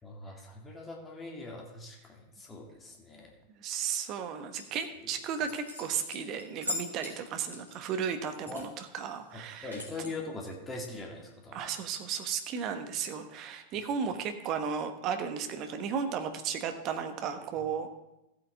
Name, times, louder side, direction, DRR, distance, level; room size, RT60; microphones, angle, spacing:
voice 1, 0.0-3.3 5.0-5.1 8.5-8.7 9.3-11.7, left 2 dB, 15° left, 0 dB, 2.3 m, -42 dB
voice 2, 3.6-9.8 11.5-17.9, right 7 dB, 35° right, 7 dB, 1.2 m, -34 dB
sound 1, 4.6-4.8 5.3-7.2 7.5-8.7 8.9-9.0 9.4-10.1, left 2 dB, 90° right, 2.7 m, -40 dB
14.5 x 8.2 x 3.6 m, 0.94 s
figure-of-eight pair, 90°, 0 cm